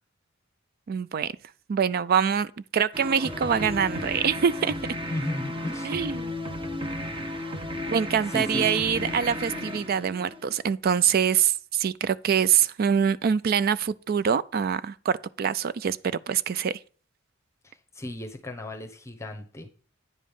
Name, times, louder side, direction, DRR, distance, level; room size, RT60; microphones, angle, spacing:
voice 1, 0.9-1.3 1.7-4.7 5.8-6.3 7.9-16.8, right 7 dB, 50° right, 0.4 m, -25 dB
sound 1, 2.9-10.7, left 1 dB, 25° right, 1.1 m, -34 dB
voice 2, 5.1-5.9 8.3-8.7 17.6-19.7, left 1 dB, 15° left, 0.9 m, -35 dB
9.5 x 5.2 x 5.3 m
head